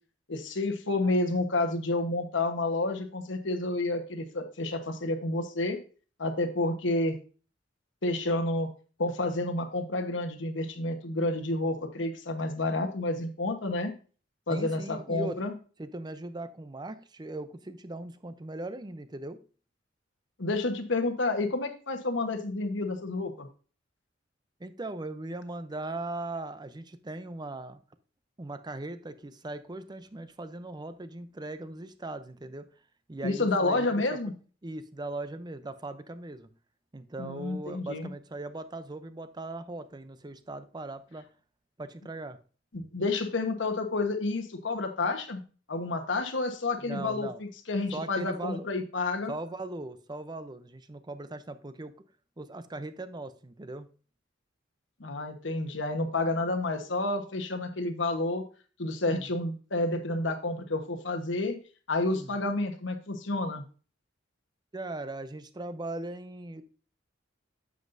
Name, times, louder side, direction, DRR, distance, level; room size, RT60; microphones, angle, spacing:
voice 1, 0.3-5.8 6.2-7.2 8.0-8.7 9.0-13.9 14.5-15.5 20.4-23.5 33.2-34.3 37.2-38.1 42.7-45.4 45.7-49.3 55.0-58.4 58.8-61.6 61.9-63.6, left 2 dB, 75° left, 5 dB, 1.2 m, -30 dB
voice 2, 14.5-15.4 15.8-19.4 24.6-27.8 28.4-32.7 33.1-34.2 34.6-36.5 36.9-41.3 41.8-42.4 46.8-47.4 47.9-48.8 49.3-51.9 52.4-53.9 59.1-59.3 62.1-62.4 64.7-66.6, right 2 dB, 25° right, 12 dB, 0.6 m, -39 dB
9.4 x 7.4 x 2.6 m, 0.37 s
head